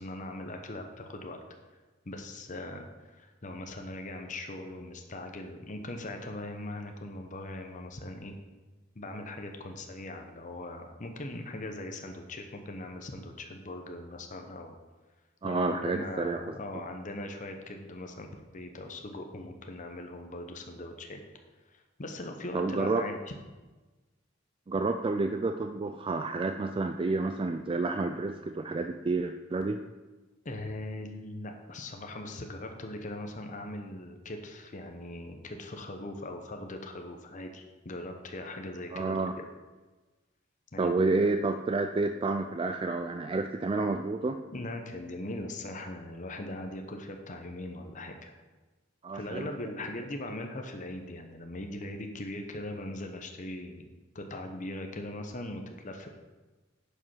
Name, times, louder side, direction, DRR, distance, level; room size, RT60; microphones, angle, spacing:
voice 1, 0.0-1.4 2.1-8.3 8.9-14.8 15.4-21.2 21.7-23.3 30.4-39.5 40.7-41.2 44.5-48.3 49.1-53.9 54.1-56.1, left 1 dB, 40° left, 4 dB, 0.9 m, -40 dB
voice 2, 15.4-16.4 22.5-23.0 24.7-29.8 38.9-39.3 40.8-44.4 49.0-49.5, right 3 dB, 25° right, 7 dB, 0.3 m, -29 dB
10.5 x 5.3 x 5.6 m, 1.2 s
head